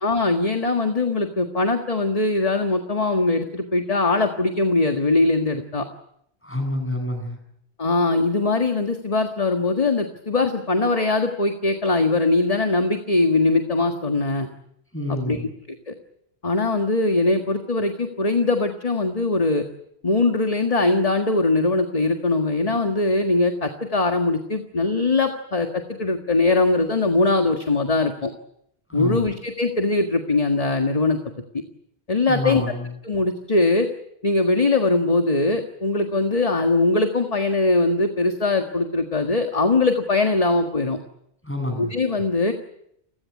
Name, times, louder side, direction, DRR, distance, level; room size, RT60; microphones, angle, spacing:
voice 1, 0.0-5.9 7.8-14.5 15.1-15.4 15.9-16.0 16.4-19.6 20.0-28.3 28.9-31.2 32.1-32.6 33.0-33.9 34.2-41.0 41.8-42.5, left 2 dB, 35° left, 5 dB, 1.8 m, -21 dB
voice 2, 6.4-7.4 14.9-15.5 28.9-29.3 32.3-32.9 41.4-41.9, left 1 dB, 10° left, 4 dB, 7.6 m, -27 dB
29.5 x 16.5 x 9.6 m, 0.77 s
omnidirectional pair, 1.1 m